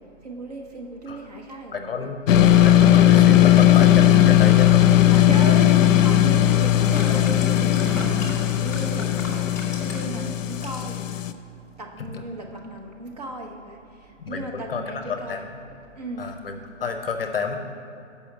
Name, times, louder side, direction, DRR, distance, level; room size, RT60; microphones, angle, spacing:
voice 1, 0.2-2.1 3.3-3.7 5.1-9.2 9.8-11.0 11.8-13.8 14.3-15.4 16.0-16.3 16.8-16.9, right 2 dB, 30° right, 0 dB, 0.7 m, -36 dB
voice 2, 1.7-2.3 2.6-4.8 12.0-12.2 14.2-15.6 16.2-17.6, left 5 dB, 50° left, 6 dB, 0.7 m, -30 dB
sound 1, 2.3-11.3, left 12 dB, 80° left, 0.5 m, -17 dB
sound 2, 6.9-10.2 10.5-11.0 11.3-11.4, left 1 dB, 10° left, 0.6 m, -35 dB
6.1 x 5.6 x 7.0 m, 2.6 s
hypercardioid pair, 165°, 38 cm